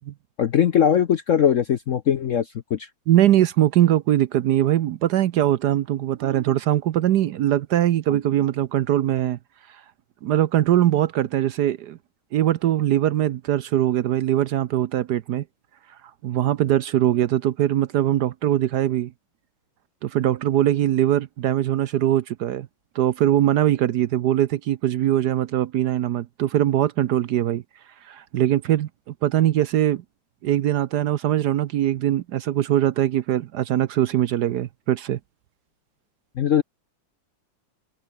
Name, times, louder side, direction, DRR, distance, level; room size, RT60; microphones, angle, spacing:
voice 1, 0.4-2.9 36.4-36.6, left 9 dB, 65° left, 0.8 m, -20 dB
voice 2, 3.1-9.4 10.2-12.0 12.3-15.4 16.2-19.1 20.0-22.7 22.9-27.6 28.0-28.9 29.2-30.0 30.4-35.2, right 12 dB, 65° right, 1.1 m, -21 dB
omnidirectional pair, 2.2 m